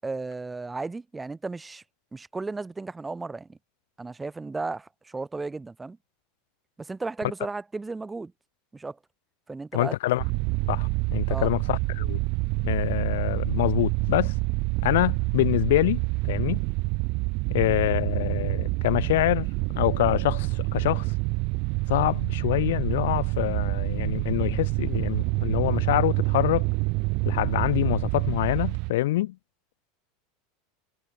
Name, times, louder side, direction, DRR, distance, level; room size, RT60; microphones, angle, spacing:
voice 1, 0.0-1.8 2.1-3.6 4.0-6.0 6.8-8.3 8.7-9.0 9.5-10.0 11.3-11.5, right 3 dB, 10° right, 6.1 m, -34 dB
voice 2, 9.7-10.2 10.7-12.2 12.6-14.4 14.8-16.6 17.5-19.5 19.7-21.1 21.9-26.6 27.2-29.3, left 16 dB, 80° left, 3.2 m, -25 dB
sound 1, 10.2-28.9, right 27 dB, 50° right, 1.8 m, -27 dB
supercardioid pair, 145°, 0 cm